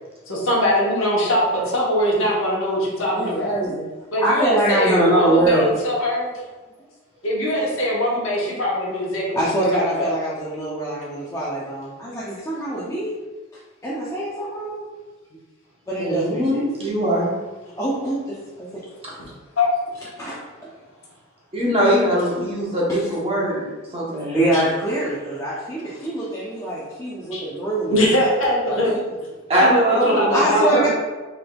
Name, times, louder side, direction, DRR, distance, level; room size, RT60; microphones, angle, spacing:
voice 1, 0.3-3.5 4.1-6.3 7.2-10.2 19.6-19.7 22.3-22.4 24.5-24.6 27.3-27.4 27.9-29.0 29.5-30.9, equal, 65° left, -4 dB, 1.0 m, -22 dB
voice 2, 3.1-3.9 4.2-5.7 9.3-13.1 13.8-14.9 15.9-16.6 17.8-18.7 20.2-20.4 22.9-23.0 24.2-28.0 28.7-29.0 30.3-30.9, right 1 dB, 15° left, -7 dB, 0.5 m, -23 dB
voice 3, 16.0-17.3 19.0-19.1 21.5-24.4 29.5-30.9, equal, 25° right, -4 dB, 0.9 m, -21 dB
3.9 x 3.4 x 2.3 m, 1.2 s
head